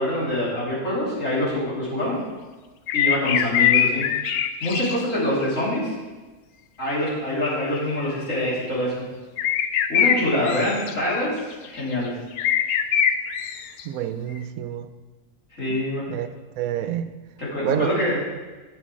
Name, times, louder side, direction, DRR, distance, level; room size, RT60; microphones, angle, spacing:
voice 1, 0.0-2.2 2.9-4.1 4.6-5.9 6.8-9.0 9.9-11.4 11.7-12.1 15.5-16.0 17.4-18.2, left 1 dB, 60° left, -7 dB, 3.7 m, -25 dB
sound 1, 2.9-5.2 5.4-5.5 7.5-7.8 8.5-8.6 9.4-10.9 11.6-11.9 12.4-13.8 14.4-14.5, left 9 dB, 85° left, 1.1 m, -22 dB
voice 2, 13.8-14.9 15.7-15.8 16.1-16.3 16.6-17.1 17.6-18.0, right 10 dB, 80° right, 10 dB, 1.1 m, -27 dB
11.5 x 6.6 x 4.9 m, 1.3 s
omnidirectional pair, 1.5 m